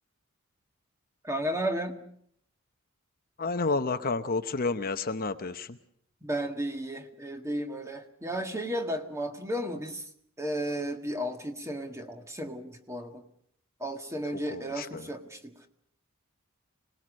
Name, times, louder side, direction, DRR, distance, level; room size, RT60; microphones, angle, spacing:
voice 1, 1.2-2.0 6.2-10.0 10.4-13.2 13.8-15.5, right 1 dB, 15° right, 6 dB, 1.8 m, -33 dB
voice 2, 3.4-5.8 14.5-15.1, left 3 dB, 40° left, 9 dB, 0.9 m, -30 dB
27.0 x 19.5 x 6.4 m, 0.67 s
head